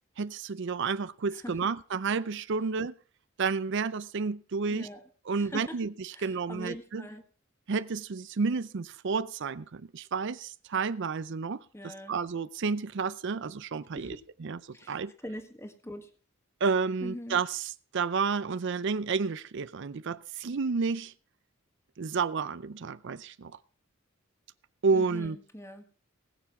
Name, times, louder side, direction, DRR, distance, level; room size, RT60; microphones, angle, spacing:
voice 1, 0.2-2.9 3.4-4.9 5.3-5.9 6.2-7.0 7.7-15.1 16.6-17.6 17.9-21.1 22.0-23.6 24.8-25.4, right 5 dB, 60° right, 0.5 m, -31 dB
voice 2, 1.3-1.7 4.7-5.1 5.4-5.8 6.1-7.2 11.7-12.2 13.9-14.2 14.7-16.1 17.0-17.4 24.9-25.8, equal, 15° left, 1.6 m, -43 dB
19.5 x 7.2 x 5.9 m
head